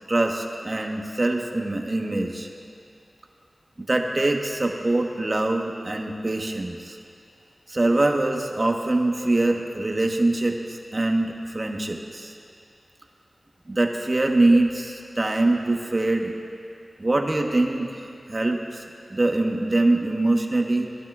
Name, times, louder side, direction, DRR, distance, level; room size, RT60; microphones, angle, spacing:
voice 1, 0.1-2.5 3.9-7.0 7.7-12.3 13.7-16.3 17.0-18.8 19.1-20.9, right 2 dB, 40° right, 2 dB, 1.1 m, -23 dB
20.5 x 12.0 x 2.4 m, 2.4 s
cardioid pair, 45°, 0 cm